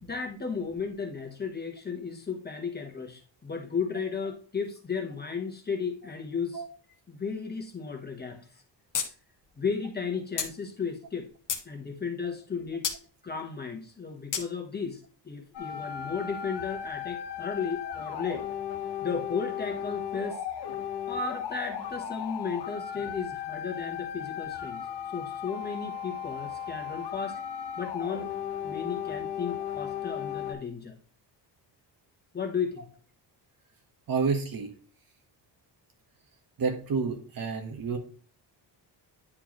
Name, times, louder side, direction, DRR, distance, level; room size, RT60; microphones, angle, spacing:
voice 1, 0.0-6.6 7.1-8.6 9.6-11.3 11.6-12.9 13.2-18.4 19.0-20.4 21.1-27.4 27.8-28.3 28.6-31.0 32.3-32.9, left 5 dB, 20° left, 3 dB, 1.1 m, -34 dB
sound 1, 8.9-9.1 9.4-9.5 10.4-10.5 11.1-11.7 12.8-13.0 14.3-14.5, left 7 dB, 45° left, 1.1 m, -30 dB
sound 2, 15.5-30.5, left 9 dB, 65° left, 1.2 m, -36 dB
voice 2, 34.1-34.7 36.6-38.0, right 5 dB, 50° right, 4 dB, 1.4 m, -29 dB
9.8 x 4.6 x 3.1 m, 0.42 s
wide cardioid pair, 160°, 43 cm